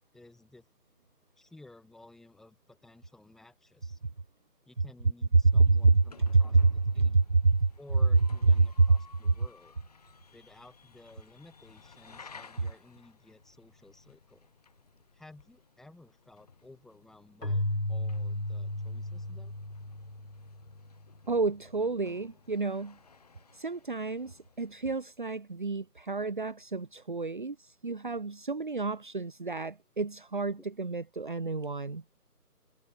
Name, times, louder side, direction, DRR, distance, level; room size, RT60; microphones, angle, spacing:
voice 1, 0.1-0.7 1.4-4.0 4.7-6.6 6.9-7.2 7.8-9.8 10.3-14.5 15.1-19.5 30.6-30.7, left 2 dB, ahead, 5.9 m, -55 dB
voice 2, 5.3-7.7 8.6-9.0 9.2-9.3 21.3-23.0 23.5-32.0, right 3 dB, 30° right, 2.1 m, -27 dB
sound 1, 5.5-24.9, left 5 dB, 25° left, 3.2 m, -57 dB
Keyboard (musical), 17.4-20.9, left 1 dB, 90° left, 4.9 m, -34 dB
figure-of-eight pair, 160°, 48 cm